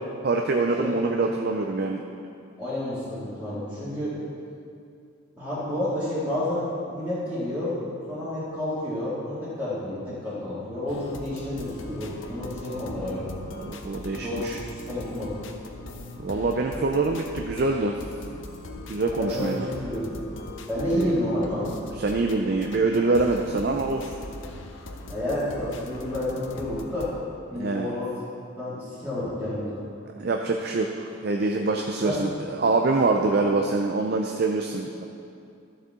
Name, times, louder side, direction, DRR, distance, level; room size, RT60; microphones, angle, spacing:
voice 1, 0.2-2.0 13.6-14.6 16.2-17.9 18.9-19.7 20.9-21.1 22.0-24.1 27.5-27.9 30.2-35.0, right 3 dB, 50° right, 2 dB, 0.5 m, -25 dB
voice 2, 2.6-4.1 5.4-13.3 14.1-14.5 14.9-15.4 19.2-19.5 19.8-20.1 20.7-21.7 25.1-27.1 27.4-28.1 28.5-29.8 32.0-32.2, left 1 dB, 10° right, -13 dB, 2.1 m, -30 dB
sound 1, 10.9-27.1, left 2 dB, 70° left, 0.7 m, -40 dB
12.5 x 6.7 x 3.7 m, 2.5 s
head